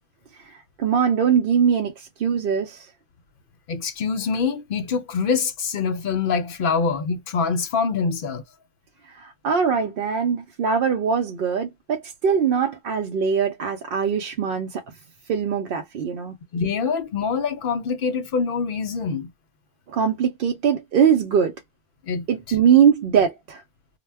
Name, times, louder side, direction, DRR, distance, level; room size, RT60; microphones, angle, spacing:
voice 1, 0.4-2.9 9.0-14.8 15.3-16.3 19.9-21.6 22.3-23.6, right 7 dB, 65° right, 0.7 m, -22 dB
voice 2, 3.7-8.4 16.5-19.3 22.0-22.2, left 5 dB, 60° left, 0.7 m, -25 dB
2.2 x 2.1 x 3.3 m
omnidirectional pair, 1.1 m